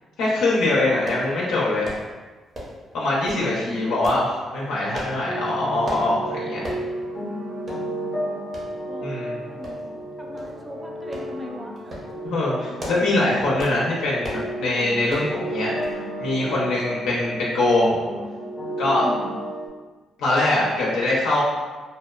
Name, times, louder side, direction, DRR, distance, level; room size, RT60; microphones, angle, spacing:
voice 1, 0.2-1.9 2.9-4.3 4.5-6.6 9.0-9.4 12.2-18.0 18.8-19.0 20.2-21.4, left 2 dB, 90° left, -5 dB, 0.4 m, -23 dB
sound 1, 1.1-1.3 1.8-2.1 2.5-2.8 3.3-3.5 4.0-4.2 4.9-5.2 5.9-6.1 6.6-6.8 7.2-7.3 7.7-7.8 8.5-8.7 9.6-10.0 10.4-10.5 11.1-11.3 11.8-12.1 12.6-13.1 13.6-13.8 14.2-14.5 15.1-15.3 15.8-16.0 16.3-16.4, equal, 45° right, 0.7 m, -35 dB
voice 2, 3.3-3.9 7.7-8.3 8.9-9.2 9.5-11.9 19.0-19.4, equal, 15° right, 0 dB, 0.3 m, -38 dB
sound 2, 5.3-19.7, right 1 dB, 40° left, 0.6 m, -32 dB
sound 3, 5.4-17.9, left 2 dB, 70° right, 1.2 m, -43 dB
2.7 x 2.0 x 2.3 m, 1.3 s
cardioid pair, 90°, 0 cm